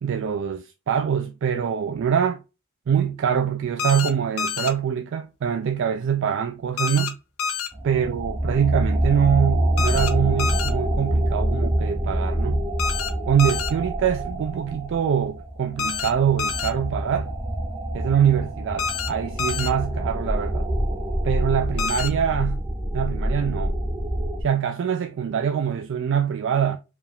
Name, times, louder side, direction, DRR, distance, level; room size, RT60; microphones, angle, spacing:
voice 1, 0.0-2.4 2.9-7.2 7.8-12.7 13.2-17.3 17.9-20.7 21.2-22.6 22.9-23.8 24.4-26.8, right 8 dB, 55° right, 0.3 m, -24 dB
sound 1, 3.8-4.1 4.4-4.7 6.8-7.1 7.4-7.7 9.8-10.1 10.4-10.7 12.8-13.1 13.4-13.7 15.8-16.1 16.4-16.7 18.8-19.1 19.4-19.7 21.8-22.1, left 6 dB, 70° left, 0.7 m, -27 dB
sound 2, 7.7-24.4, right 1 dB, 15° right, 0.6 m, -26 dB
4.7 x 2.4 x 3.4 m
head